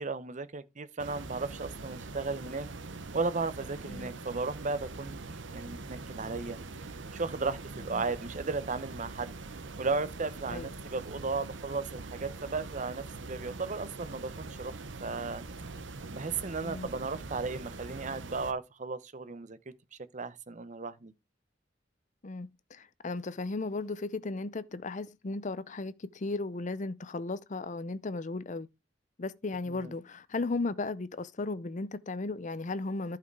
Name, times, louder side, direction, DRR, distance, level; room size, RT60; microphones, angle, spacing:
voice 1, 0.0-2.7 3.1-9.3 9.8-14.7 15.0-15.4 16.1-19.6 20.1-21.1 29.7-29.9, right 4 dB, 40° right, 0.8 m, -35 dB
sound 1, 1.0-18.5, right 3 dB, 80° right, 1.0 m, -43 dB
voice 2, 22.2-28.7 29.2-33.2, left 3 dB, 40° left, 0.6 m, -35 dB
11.5 x 5.0 x 4.6 m
head